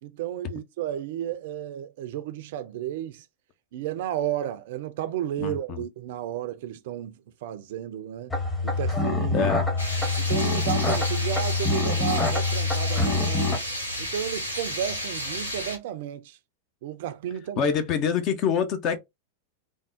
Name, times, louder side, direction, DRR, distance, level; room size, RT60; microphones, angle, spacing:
voice 1, 0.0-3.3 3.7-7.2 7.4-8.4 8.6-9.5 10.2-13.5 14.0-16.4 16.8-17.7, right 11 dB, 55° right, 0.4 m, -33 dB
voice 2, 5.4-5.8 9.3-9.6 17.6-19.0, left 7 dB, 40° left, 0.6 m, -25 dB
sound 1, 8.3-13.6, left 3 dB, 20° left, 1.0 m, -25 dB
sound 2, 9.8-15.8, equal, 85° left, 0.9 m, -32 dB
3.5 x 2.1 x 2.4 m
figure-of-eight pair, 90°, 0 cm